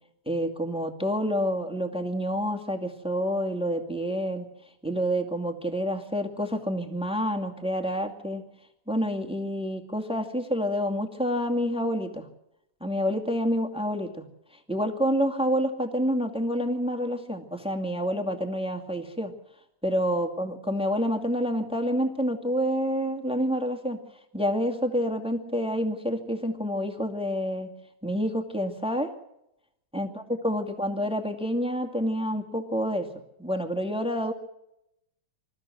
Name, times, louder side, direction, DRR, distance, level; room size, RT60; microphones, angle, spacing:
voice 1, 0.2-4.5 4.8-8.4 8.9-12.3 12.8-14.2 14.7-19.3 19.8-24.0 24.3-27.7 28.0-29.1 29.9-30.1 30.4-33.1 33.4-34.3, equal, 5° right, 5 dB, 1.2 m, -28 dB
26.5 x 14.5 x 7.8 m, 0.84 s
omnidirectional pair, 3.9 m